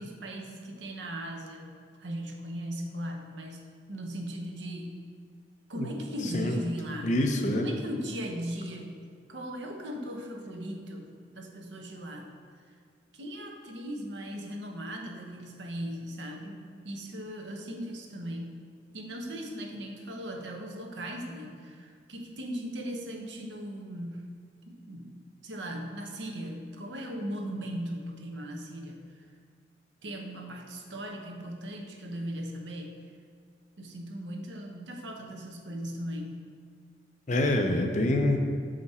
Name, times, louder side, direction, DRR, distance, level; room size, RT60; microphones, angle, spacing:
voice 1, 0.0-5.0 5.7-7.3 7.5-8.9 9.3-12.3 13.1-16.6 16.8-18.6 18.9-24.3 24.7-25.2 25.4-29.3 30.0-33.0 33.8-36.4, equal, 85° right, 2 dB, 0.9 m, -38 dB
voice 2, 7.0-7.6 37.3-38.4, left 1 dB, 40° left, 3 dB, 0.6 m, -26 dB
6.8 x 5.1 x 4.2 m, 2.2 s
head